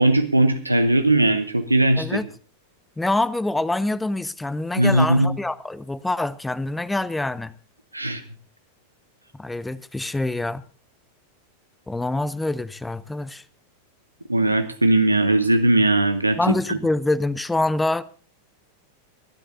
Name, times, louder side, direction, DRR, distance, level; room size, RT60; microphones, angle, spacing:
voice 1, 0.0-2.2 4.8-5.3 7.9-8.2 14.3-16.4 16.7-16.8, right 2 dB, 85° right, 0.8 m, -19 dB
voice 2, 3.0-7.5 9.3-10.6 11.9-13.4 16.4-18.0, left 2 dB, 5° left, 0.7 m, -25 dB
29.5 x 10.0 x 2.6 m
figure-of-eight pair, 90°, 0 cm